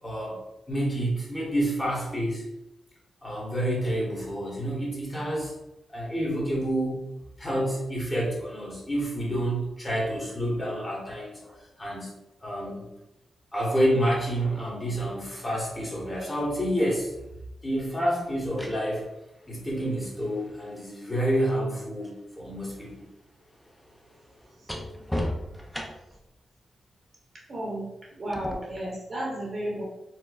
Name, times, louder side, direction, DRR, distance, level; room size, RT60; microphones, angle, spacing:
voice 1, 0.0-0.4 0.7-2.4 3.2-5.5 5.9-7.0 7.4-12.1 12.4-12.9 13.5-17.1 17.6-19.1 19.5-23.1, equal, 20° left, -5 dB, 1.1 m, -28 dB
sound 1, 18.2-22.2 22.5-26.3 28.3-28.5, left 1 dB, 5° left, 0.4 m, -38 dB
voice 2, 27.5-27.9 28.2-29.8, right 1 dB, 45° right, -3 dB, 0.9 m, -33 dB
4.3 x 2.2 x 2.3 m, 0.90 s
wide cardioid pair, 120°, 0 cm